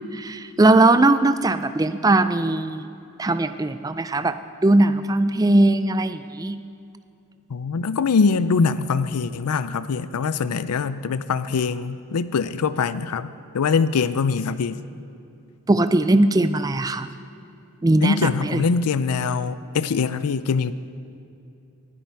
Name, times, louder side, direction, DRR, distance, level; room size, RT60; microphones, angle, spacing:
voice 1, 0.1-2.9 3.2-6.6 15.7-17.1 17.8-18.6, right 2 dB, 15° right, 11 dB, 0.3 m, -19 dB
voice 2, 7.5-14.8 18.0-20.7, left 5 dB, 90° left, 14 dB, 0.5 m, -23 dB
19.5 x 11.0 x 4.7 m, 2.7 s
head